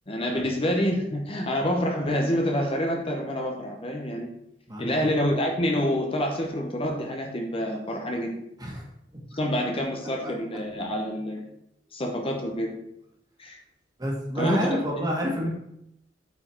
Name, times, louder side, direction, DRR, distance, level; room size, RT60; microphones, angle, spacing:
voice 1, 0.1-4.3 4.8-8.3 9.3-11.5 11.9-12.7 13.4-13.6 14.3-14.8, equal, 30° left, 1 dB, 1.0 m, -27 dB
voice 2, 4.7-5.1 8.6-8.8 10.2-10.3 14.0-15.5, equal, 20° right, -2 dB, 2.0 m, -29 dB
8.2 x 4.8 x 4.5 m, 0.80 s
head